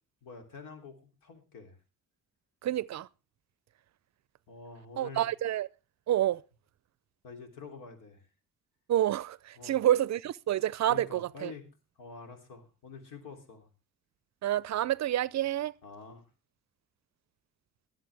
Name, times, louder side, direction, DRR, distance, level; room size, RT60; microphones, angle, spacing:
voice 1, 0.2-1.8 4.5-5.3 7.2-8.3 9.6-9.8 10.9-11.7 12.0-13.7 15.8-16.2, left 4 dB, 75° left, 3.0 m, -47 dB
voice 2, 2.6-3.1 5.0-5.7 6.1-6.4 8.9-11.5 14.4-15.7, right 12 dB, 55° right, 0.5 m, -28 dB
22.5 x 7.6 x 3.3 m
cardioid pair, 75°, 32 cm